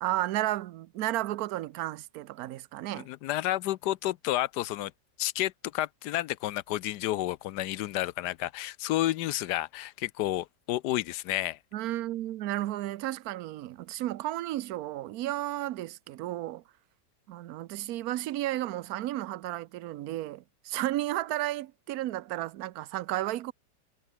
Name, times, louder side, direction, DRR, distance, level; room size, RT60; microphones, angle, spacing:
voice 1, 0.0-3.1 11.7-16.6 17.3-23.5, right 15 dB, 65° right, 1.0 m, -33 dB
voice 2, 2.9-4.9 5.2-11.6, left 15 dB, 75° left, 1.2 m, -31 dB
omnidirectional pair, 1.9 m